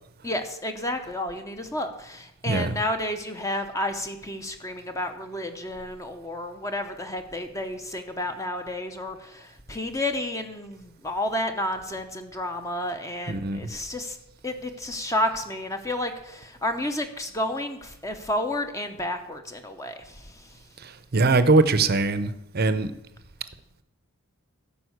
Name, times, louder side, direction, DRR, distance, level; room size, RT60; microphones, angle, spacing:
voice 1, 0.2-14.2 14.4-20.6, left 1 dB, 15° left, 6 dB, 0.8 m, -31 dB
voice 2, 2.5-2.8 13.3-13.6 21.1-22.9, right 3 dB, 45° right, 12 dB, 0.7 m, -21 dB
13.0 x 5.3 x 7.9 m, 0.84 s
head